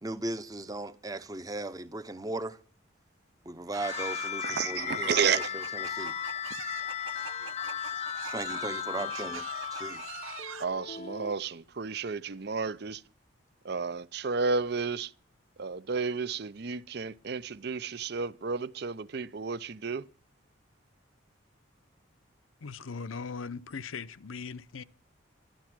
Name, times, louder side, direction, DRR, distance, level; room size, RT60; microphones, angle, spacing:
voice 1, 0.0-2.6 3.5-6.1 8.3-10.0, right 2 dB, 20° right, 0.7 m, -37 dB
sound 1, 3.7-10.7, right 7 dB, 85° right, 0.9 m, -44 dB
sound 2, 3.8-11.3, left 9 dB, 30° left, 0.5 m, -36 dB
voice 2, 4.4-5.5 10.6-13.0 13.6-15.1 15.6-20.0, right 5 dB, 50° right, 0.6 m, -32 dB
voice 3, 22.6-24.8, left 5 dB, 85° left, 0.7 m, -39 dB
12.5 x 12.0 x 6.0 m
head